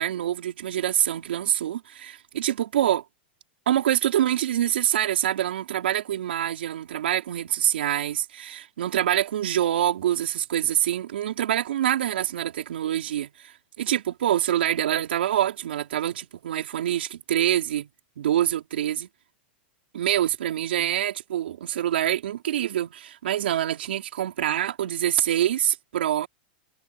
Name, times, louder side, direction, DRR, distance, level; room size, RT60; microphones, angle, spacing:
voice 1, 0.0-3.0 3.7-17.9 18.2-19.1 19.9-26.3, right 11 dB, 80° right, 4.5 m, -25 dB
supercardioid pair, 145°, 6 cm